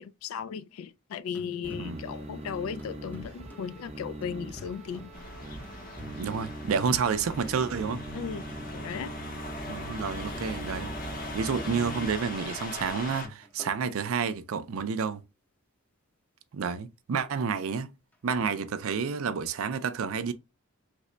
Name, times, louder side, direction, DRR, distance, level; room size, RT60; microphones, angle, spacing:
voice 1, 0.0-5.1 8.1-8.4 8.7-9.1, left 7 dB, 75° left, 0.3 m, -36 dB
sound 1, 1.2-14.6 18.1-18.2, left 1 dB, 10° left, 0.6 m, -52 dB
sound 2, 1.6-12.0, right 1 dB, 30° right, 0.7 m, -42 dB
sound 3, 5.1-13.3, left 1 dB, 40° left, 0.8 m, -40 dB
voice 2, 6.0-8.0 9.7-10.9 11.3-15.2 16.5-17.9 18.2-20.3, right 6 dB, 80° right, 0.4 m, -30 dB
3.3 x 2.1 x 3.8 m
head